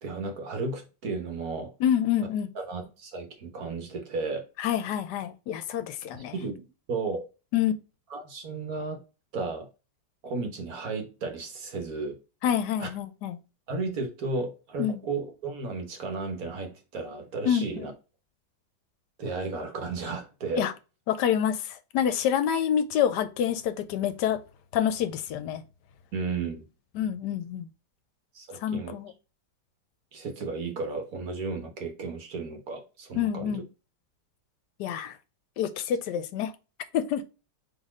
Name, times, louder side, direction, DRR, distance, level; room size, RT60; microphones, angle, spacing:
voice 1, 0.0-1.7 2.5-4.5 6.1-7.2 8.1-9.0 9.3-9.7 10.2-12.2 12.8-12.9 13.7-17.9 19.2-20.7 26.1-26.7 28.3-29.0 30.1-33.6, right 3 dB, 55° right, 1.4 m, -34 dB
voice 2, 1.8-2.5 4.6-6.3 7.5-7.7 12.4-13.4 14.8-15.0 17.4-17.6 20.5-20.7 21.1-24.4 24.7-25.6 26.9-27.7 28.6-29.1 33.1-33.6 34.8-35.2 35.6-36.5 36.9-37.2, left 9 dB, 75° left, 1.1 m, -27 dB
4.1 x 3.2 x 3.6 m
omnidirectional pair, 2.0 m